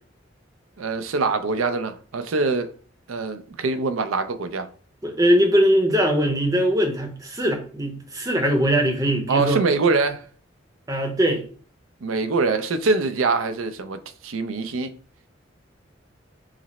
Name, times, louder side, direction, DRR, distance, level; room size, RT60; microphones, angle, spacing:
voice 1, 0.8-2.7 3.1-4.7 9.3-10.2 12.0-14.0 14.2-14.9, right 3 dB, 85° right, 0.5 m, -23 dB
voice 2, 5.0-9.6 10.9-11.4, equal, 15° right, 0.7 m, -21 dB
5.0 x 2.0 x 4.1 m
head